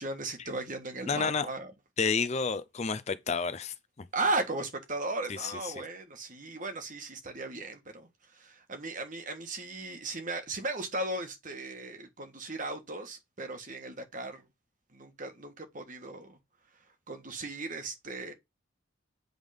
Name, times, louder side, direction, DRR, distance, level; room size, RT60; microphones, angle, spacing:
voice 1, 0.0-1.7 4.1-14.4 14.9-16.4 17.1-18.3, right 2 dB, 40° right, 1.5 m, -36 dB
voice 2, 1.1-1.5 2.0-3.7 5.4-5.7, left 5 dB, 35° left, 0.5 m, -30 dB
8.0 x 3.6 x 5.1 m
head